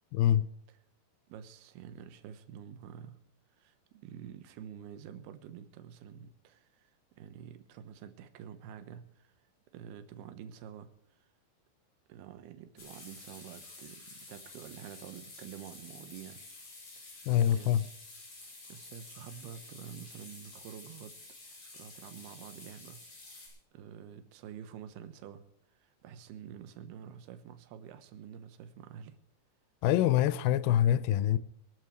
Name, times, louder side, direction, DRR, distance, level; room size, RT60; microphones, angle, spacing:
voice 1, 0.1-0.5 17.3-17.8 29.8-31.4, left 11 dB, 85° left, 2.1 m, -25 dB
voice 2, 1.3-3.2 3.6-9.3 9.7-10.9 11.2-11.3 12.1-16.4 17.0-17.2 17.5-17.7 18.7-21.2 21.4-23.1 23.3-25.4 25.8-29.2, right 9 dB, 75° right, 3.0 m, -48 dB
sound 1, 12.8-23.5, left 2 dB, 50° left, 7.3 m, -50 dB
23.5 x 12.0 x 3.2 m
omnidirectional pair, 5.0 m